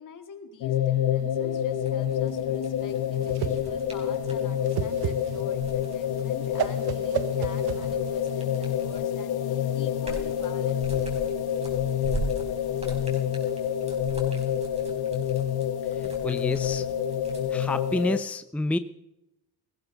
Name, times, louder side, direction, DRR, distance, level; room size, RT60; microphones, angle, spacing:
voice 1, 0.0-11.3, left 6 dB, 55° left, 7 dB, 2.2 m, -47 dB
sound 1, 0.6-18.2, left 9 dB, 75° left, 1.1 m, -28 dB
sound 2, 1.7-4.5 5.4-9.2 9.6-17.7, right 2 dB, 15° right, 4.8 m, -40 dB
Whoosh swoosh swish, 2.8-8.3, right 10 dB, 75° right, 1.3 m, -33 dB
voice 2, 15.8-16.9 17.5-18.8, left 1 dB, 5° left, 11 dB, 0.6 m, -29 dB
18.5 x 14.5 x 4.0 m, 0.89 s
cardioid pair, 100°, 38 cm